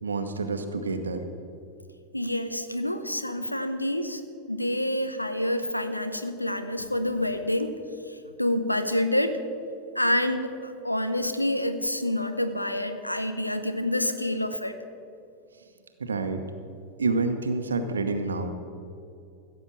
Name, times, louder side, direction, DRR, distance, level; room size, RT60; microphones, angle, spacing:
voice 1, 0.0-1.2 16.0-16.4 17.0-18.5, right 3 dB, 75° right, 7 dB, 1.0 m, -28 dB
voice 2, 2.1-7.8 8.1-9.4 9.9-14.8, left 1 dB, 85° left, 9 dB, 0.8 m, -28 dB
15.5 x 7.3 x 7.2 m, 2.6 s
figure-of-eight pair, 85°, 0 cm